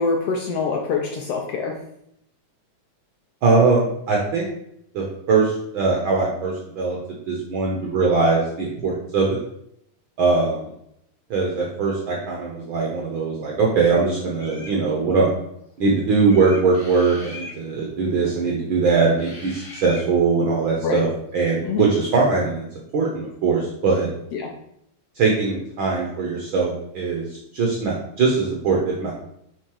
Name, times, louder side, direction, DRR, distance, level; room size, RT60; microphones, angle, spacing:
voice 1, 0.0-1.8 20.8-21.0 21.6-21.9 24.3-24.5, left 4 dB, 75° left, 2 dB, 1.5 m, -24 dB
voice 2, 3.4-4.5 4.9-7.0 7.3-9.3 10.2-10.7 11.3-15.3 15.8-21.1 21.3-22.7 22.9-24.1 25.2-27.3 27.5-29.1, right 4 dB, 65° right, -2 dB, 1.2 m, -21 dB
sound 1, 14.3-14.8 16.3-17.6 19.2-20.1, left 2 dB, 35° left, 1.8 m, -40 dB
6.2 x 3.7 x 4.7 m, 0.75 s
omnidirectional pair, 3.3 m